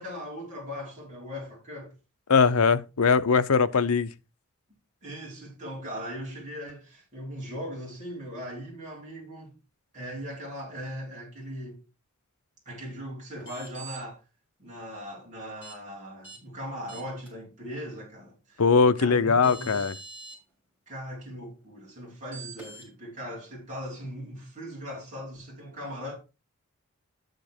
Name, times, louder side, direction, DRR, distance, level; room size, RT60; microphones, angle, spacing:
voice 1, 0.0-1.9 5.0-9.5 9.9-11.8 12.6-14.2 14.6-18.6 19.0-19.9 20.9-26.2, equal, 35° right, 4.8 m, -39 dB
voice 2, 2.3-4.1 18.6-19.9, left 5 dB, 85° left, 0.7 m, -21 dB
sound 1, 13.4-14.0 15.6-15.7 16.2-16.4 16.9-17.3 18.9-19.0 19.4-20.4 22.3-22.9, right 3 dB, 10° right, 5.4 m, -44 dB
12.0 x 5.2 x 4.4 m
head